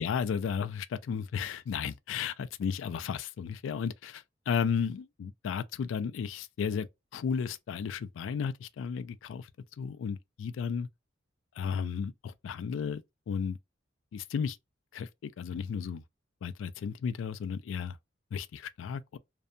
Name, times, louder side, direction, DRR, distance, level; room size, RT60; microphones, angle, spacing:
voice 1, 0.0-6.9 7.1-9.5 9.8-10.9 11.6-13.6 14.1-14.6 14.9-16.0 16.4-18.0 18.3-19.2, left 6 dB, 90° left, 0.3 m, -34 dB
2.6 x 2.1 x 2.4 m
head